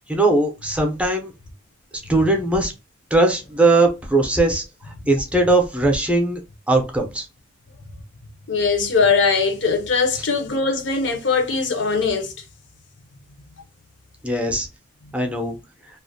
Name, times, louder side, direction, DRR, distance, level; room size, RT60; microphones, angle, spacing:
voice 1, 0.1-1.3 2.1-2.7 3.1-6.4 6.7-7.3 10.2-10.3 14.2-14.7 15.1-15.6, right 2 dB, 5° right, 0.5 m, -19 dB
voice 2, 8.5-12.3, left 4 dB, 80° left, 0.6 m, -20 dB
2.4 x 2.1 x 2.6 m
head